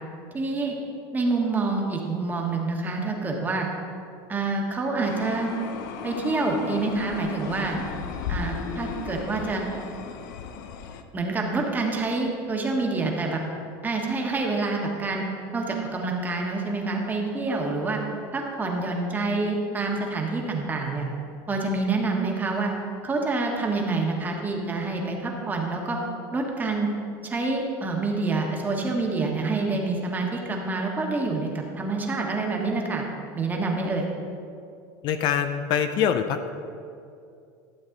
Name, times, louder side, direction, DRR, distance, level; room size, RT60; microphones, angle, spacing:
voice 1, 0.3-0.8 1.1-3.7 4.3-5.5 6.0-7.8 8.3-9.6 11.1-13.4 13.8-15.3 15.5-18.0 18.3-21.1 21.5-22.7 23.0-26.0 26.3-26.9 27.2-33.1 33.3-34.0, right 3 dB, 20° right, 1 dB, 1.4 m, -27 dB
sound 1, 5.0-11.0, left 7 dB, 85° left, 0.7 m, -35 dB
voice 2, 35.0-36.5, left 8 dB, 50° left, 9 dB, 0.5 m, -24 dB
12.5 x 7.2 x 3.9 m, 2.5 s
supercardioid pair, 135°, 10 cm